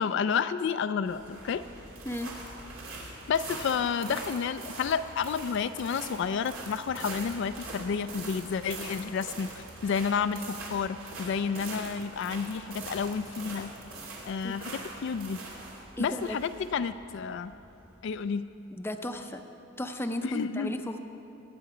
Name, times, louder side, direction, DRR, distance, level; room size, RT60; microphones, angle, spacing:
voice 1, 0.0-1.6 3.3-13.7 14.2-15.4 16.0-17.5 18.0-18.5 20.2-20.7, left 6 dB, 60° left, 11 dB, 0.3 m, -30 dB
sound 1, 1.1-18.0, right 2 dB, 80° right, 2.8 m, -43 dB
voice 2, 16.0-16.4 18.7-19.4 19.8-21.0, left 1 dB, 10° left, 6 dB, 0.5 m, -34 dB
20.5 x 8.3 x 4.9 m, 2.9 s
head